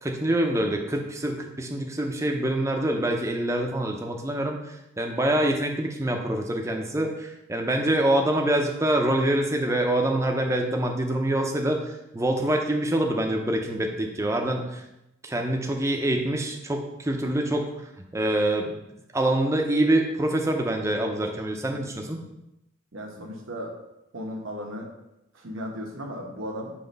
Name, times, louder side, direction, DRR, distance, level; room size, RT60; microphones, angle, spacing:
voice 1, 0.0-14.8 15.2-17.7 18.1-18.7 19.1-22.2, right 1 dB, 15° right, 2 dB, 0.6 m, -25 dB
voice 2, 22.9-23.7 24.1-24.9 25.3-26.7, equal, 80° right, 0 dB, 1.0 m, -35 dB
5.9 x 3.2 x 5.2 m, 0.88 s
head